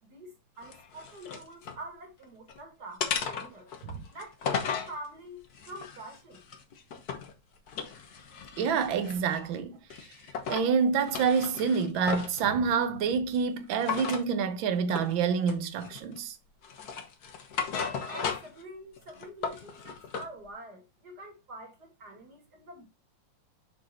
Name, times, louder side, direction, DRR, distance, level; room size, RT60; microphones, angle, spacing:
voice 1, 0.0-3.7 4.1-6.4 18.1-22.8, right 1 dB, 55° right, 2.7 m, -46 dB
sound 1, 0.6-1.8 2.2-2.6 3.0-4.9 5.5-7.3 7.7-9.5 9.9-10.7 11.0-12.4 13.8-14.3 14.9-15.1 15.5-16.2 16.6-18.6 19.0-20.3, left 6 dB, 55° left, 1.6 m, -35 dB
voice 2, 8.6-9.8 10.5-16.4, right 6 dB, 85° right, 1.6 m, -27 dB
6.5 x 6.1 x 2.9 m
omnidirectional pair, 2.1 m